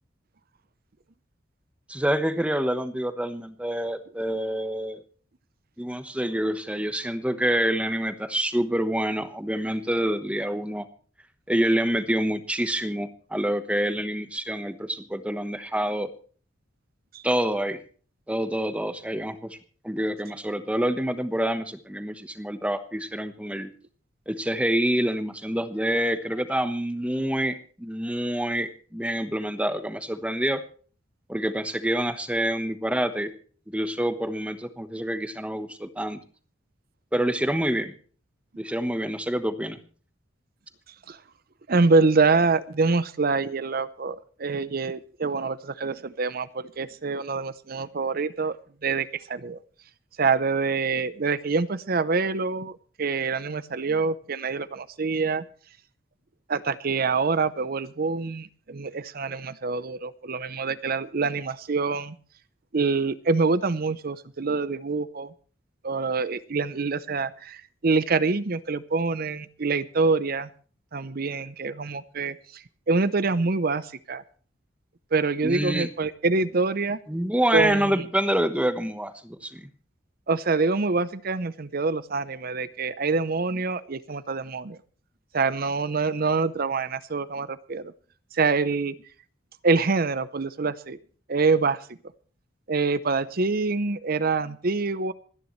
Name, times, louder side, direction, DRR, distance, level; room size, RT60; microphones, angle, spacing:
voice 1, 1.9-5.0 5.8-10.8 11.5-16.1 17.2-17.8 18.3-19.6 19.8-23.7 24.3-30.6 31.3-33.3 33.7-36.2 37.1-37.9 38.6-39.8 75.4-75.9 77.1-79.7, right 1 dB, 5° right, 10 dB, 1.0 m, -27 dB
voice 2, 41.7-48.6 48.8-49.6 50.2-55.4 56.5-62.2 62.7-65.3 65.8-70.5 70.9-74.2 75.1-77.0 77.5-78.0 80.3-84.8 85.3-87.9 88.3-88.9 89.6-91.0 91.3-91.8 92.7-95.1, right 4 dB, 50° right, 15 dB, 0.7 m, -25 dB
27.0 x 10.0 x 3.2 m, 0.41 s
head